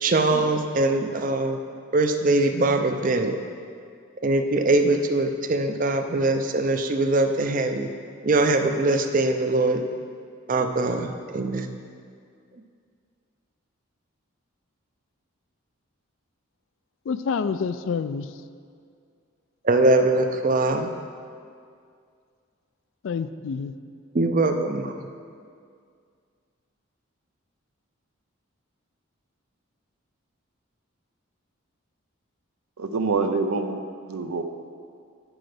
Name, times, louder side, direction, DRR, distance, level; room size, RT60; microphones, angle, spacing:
voice 1, 0.0-1.6 1.9-3.4 4.2-7.9 8.2-9.8 10.5-11.7 19.6-20.9 24.1-25.0, right 2 dB, 40° right, 6 dB, 0.5 m, -22 dB
voice 2, 17.1-18.4 23.0-23.8, left 5 dB, 60° left, 12 dB, 0.3 m, -28 dB
voice 3, 32.8-33.8 34.1-34.4, right 4 dB, 85° right, 8 dB, 0.6 m, -25 dB
8.8 x 6.2 x 5.0 m, 2.2 s
head